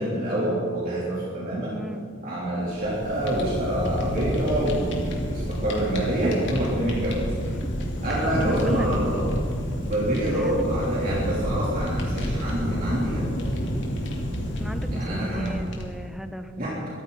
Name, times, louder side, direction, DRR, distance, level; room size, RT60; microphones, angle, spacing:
voice 1, 0.0-1.8 2.2-7.3 8.0-9.3 9.8-13.3 14.9-15.6 16.6-16.8, right 1 dB, 45° right, -7 dB, 3.4 m, -26 dB
voice 2, 1.7-2.1 7.6-7.7 8.1-8.9 10.3-10.7 14.6-16.9, equal, ahead, 7 dB, 0.7 m, -37 dB
Fire, 2.6-16.1, equal, 55° left, 2.8 m, -29 dB
23.0 x 14.5 x 4.1 m, 2.2 s
head